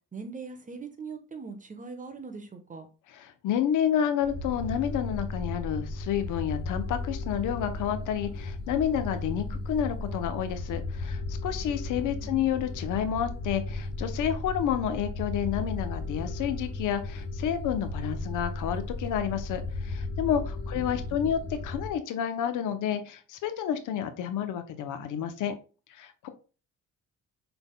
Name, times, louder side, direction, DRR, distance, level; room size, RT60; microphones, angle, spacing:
voice 1, 0.1-2.9 9.4-9.6 11.9-12.5 20.7-21.3, right 4 dB, 25° right, 1.0 m, -42 dB
voice 2, 3.2-25.5 25.9-26.3, left 9 dB, 85° left, 0.8 m, -30 dB
sound 1, 4.2-22.0, left 2 dB, 50° left, 1.6 m, -35 dB
6.0 x 3.5 x 2.2 m
cardioid pair, 90°, 30 cm